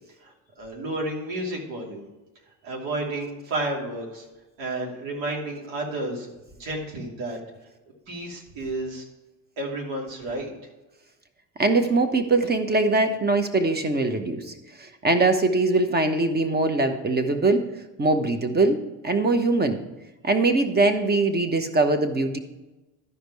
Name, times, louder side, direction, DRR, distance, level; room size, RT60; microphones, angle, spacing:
voice 1, 0.2-2.1 2.6-4.3 4.6-6.3 6.6-7.4 8.1-9.0 9.6-10.5, right 2 dB, 75° right, 0 dB, 2.8 m, -31 dB
voice 2, 11.6-14.5 14.8-17.6 18.0-19.8 20.2-22.4, right 2 dB, 20° right, 8 dB, 1.1 m, -22 dB
12.5 x 5.1 x 4.8 m, 1.1 s
supercardioid pair, 95°, 47 cm